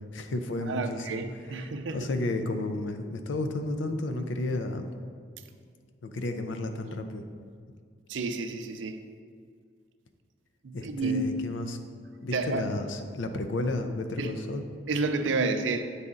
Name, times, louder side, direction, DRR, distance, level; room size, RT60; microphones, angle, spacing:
voice 1, 0.1-1.2 1.9-4.9 6.0-7.2 10.7-11.8 12.2-14.6, left 2 dB, 85° left, 7 dB, 0.5 m, -32 dB
voice 2, 0.7-2.1 8.1-9.0 10.6-11.6 12.3-12.7 14.2-14.3 14.9-15.8, right 3 dB, 85° right, 8 dB, 0.5 m, -30 dB
8.1 x 4.1 x 3.7 m, 2.1 s
head